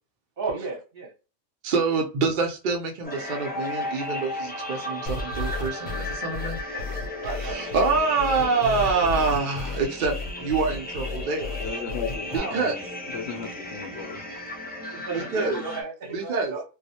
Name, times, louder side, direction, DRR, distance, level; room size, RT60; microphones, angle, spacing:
voice 1, 0.4-1.1 6.7-6.9 7.2-7.6 12.3-12.5 14.9-16.6, right 4 dB, 50° right, 0 dB, 0.8 m, -33 dB
voice 2, 1.6-6.6 7.4-11.5 12.3-12.7 15.1-15.6 16.1-16.5, right 4 dB, 65° right, 2 dB, 0.5 m, -26 dB
sound 1, 3.0-15.8, left 1 dB, 15° left, 0.3 m, -35 dB
sound 2, 5.1-12.4, left 3 dB, 85° left, 1.0 m, -33 dB
voice 3, 11.6-12.8 13.1-14.2, left 6 dB, 65° left, 4 dB, 0.8 m, -35 dB
2.3 x 2.0 x 2.7 m, 0.32 s
omnidirectional pair, 1.4 m